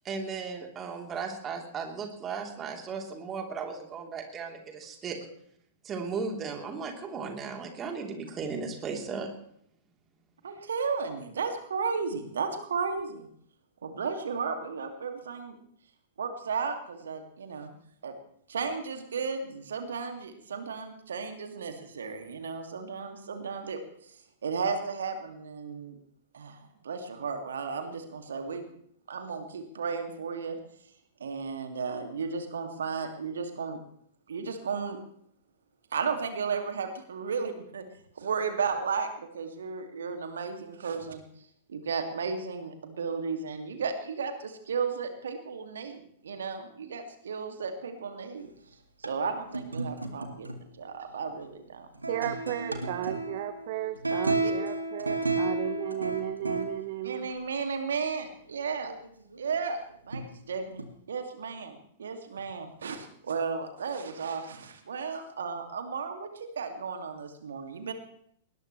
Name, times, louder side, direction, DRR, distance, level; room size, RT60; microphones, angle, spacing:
voice 1, 0.0-5.2 5.8-9.3, right 5 dB, 20° right, 2 dB, 3.4 m, -36 dB
voice 2, 10.4-13.3 13.8-15.6 16.2-17.8 18.0-18.1 18.5-23.8 24.4-26.0 26.3-28.7 29.1-30.6 31.2-33.8 34.3-35.0 35.9-37.8 38.2-41.2 41.7-48.5 49.0-50.5 50.8-51.9 54.4-54.5 57.0-58.9 59.4-59.8 60.1-67.9, right 5 dB, 65° right, 6 dB, 2.3 m, -34 dB
sound 1, 49.0-49.1 49.5-50.7 51.4-51.5 52.0-56.7 58.5-59.7 60.1-60.4 60.8-60.9, right 2 dB, 80° right, 2.1 m, -32 dB
voice 3, 52.1-57.3, right 13 dB, 45° right, 11 dB, 1.0 m, -34 dB
20.0 x 20.0 x 3.2 m, 0.68 s
figure-of-eight pair, 105°, 0 cm